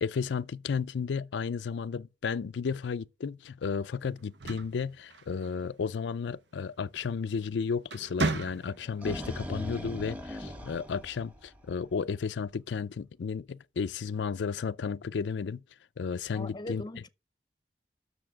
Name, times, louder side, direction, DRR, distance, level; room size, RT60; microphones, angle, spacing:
voice 1, 0.0-15.6 16.0-16.8, left 5 dB, 90° left, 0.4 m, -33 dB
sound 1, 4.2-5.7 7.2-7.4 7.8-9.0, right 3 dB, 75° right, 0.9 m, -34 dB
sound 2, 8.7-11.9, equal, 10° right, 1.0 m, -39 dB
voice 2, 16.3-17.1, left 1 dB, 25° left, 0.6 m, -40 dB
7.0 x 6.6 x 7.3 m
head